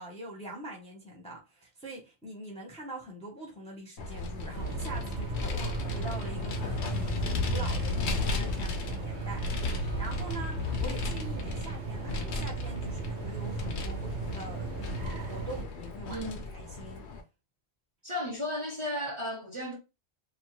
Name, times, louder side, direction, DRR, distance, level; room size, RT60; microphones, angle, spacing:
voice 1, 0.0-17.1, right 1 dB, 5° left, 0.7 m, -44 dB
Vehicle, 4.0-17.2, left 3 dB, 80° left, 0.9 m, -35 dB
sound 1, 4.5-15.6, right 4 dB, 85° right, 0.9 m, -37 dB
sound 2, 5.4-10.8, left 1 dB, 50° left, 0.6 m, -46 dB
voice 2, 16.1-16.5 18.0-19.8, left 1 dB, 30° right, 0.7 m, -34 dB
2.8 x 2.3 x 3.0 m
omnidirectional pair, 1.1 m